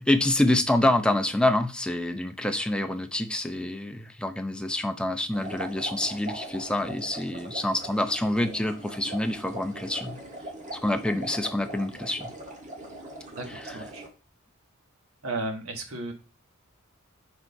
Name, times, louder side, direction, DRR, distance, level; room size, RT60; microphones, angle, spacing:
voice 1, 0.0-10.2 10.7-12.3 13.5-13.9, left 1 dB, 5° left, 0.6 m, -27 dB
sound 1, 5.3-14.1, right 1 dB, 35° right, 1.4 m, -41 dB
voice 2, 13.3-14.0 15.2-16.1, right 2 dB, 75° right, 1.5 m, -34 dB
4.7 x 4.3 x 5.3 m
head